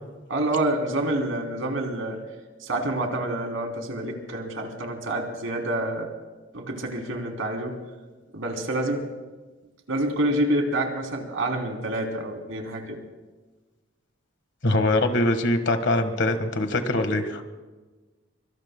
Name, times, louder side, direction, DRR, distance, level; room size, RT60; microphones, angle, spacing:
voice 1, 0.3-2.2 2.6-6.1 6.5-7.8 8.3-9.1 9.9-13.0, right 1 dB, 75° right, 2 dB, 3.2 m, -27 dB
voice 2, 14.6-17.4, left 1 dB, 55° left, 8 dB, 1.6 m, -23 dB
25.0 x 25.0 x 2.2 m, 1.2 s
head